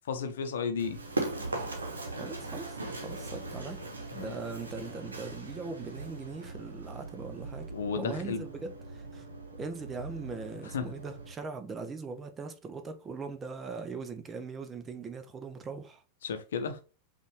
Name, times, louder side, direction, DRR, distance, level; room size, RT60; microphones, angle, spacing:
voice 1, 0.1-1.0 4.2-4.3 7.7-8.4 10.7-10.8 16.2-16.8, left 6 dB, 60° left, 0.7 m, -33 dB
Run, 0.8-11.3, right 2 dB, 75° right, 1.0 m, -40 dB
voice 2, 2.1-3.8 4.1-7.7 7.9-9.3 9.6-16.0, right 4 dB, 20° right, 0.7 m, -40 dB
5.3 x 2.6 x 3.1 m
figure-of-eight pair, 90°, 0 cm